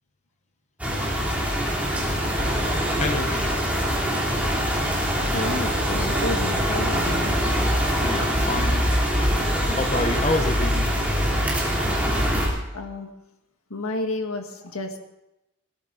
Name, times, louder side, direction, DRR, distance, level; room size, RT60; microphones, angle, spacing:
sound 1, 0.8-12.5, equal, 5° right, 3.1 m, -23 dB
voice 1, 3.0-3.6 8.0-8.9 9.2-10.8, left 2 dB, 35° left, 6 dB, 1.1 m, -28 dB
voice 2, 5.3-7.3 12.7-13.1 13.7-15.0, left 2 dB, 85° left, 4 dB, 1.7 m, -31 dB
17.0 x 14.5 x 4.0 m, 0.91 s
head